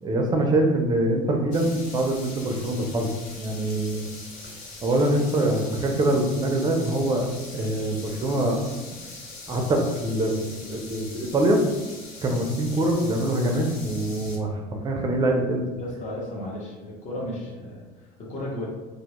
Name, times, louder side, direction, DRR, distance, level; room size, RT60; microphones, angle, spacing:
voice 1, 0.0-3.1 3.4-4.0 4.8-7.3 7.5-8.6 9.5-10.3 10.7-11.6 12.2-15.6, right 1 dB, 25° right, 2 dB, 0.4 m, -24 dB
sound 1, 1.5-14.4, left 3 dB, 85° left, 0.6 m, -42 dB
voice 2, 15.8-18.7, left 1 dB, 40° left, -3 dB, 0.7 m, -34 dB
2.1 x 2.0 x 2.8 m, 1.2 s
cardioid pair, 125°, 18 cm